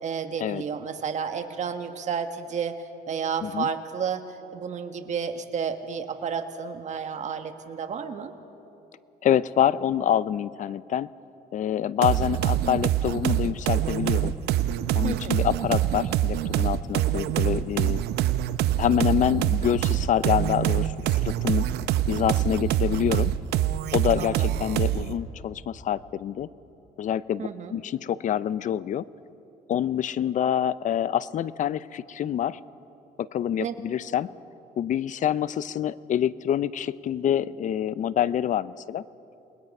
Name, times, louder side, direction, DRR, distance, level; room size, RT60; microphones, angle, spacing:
voice 1, 0.0-8.3 15.0-15.5 24.2-24.5 27.4-27.8 33.6-33.7, right 6 dB, 45° right, 7 dB, 1.6 m, -31 dB
voice 2, 9.2-11.1 11.5-14.3 14.9-18.0 18.8-21.6 22.1-23.3 23.9-26.5 27.0-29.1 29.7-32.6 33.2-34.3 34.8-39.0, left 10 dB, 50° left, 18 dB, 0.6 m, -26 dB
sound 1, 12.0-25.2, right 12 dB, 75° right, 0.7 m, -25 dB
28.5 x 20.0 x 5.4 m, 3.0 s
cardioid pair, 110°, 17 cm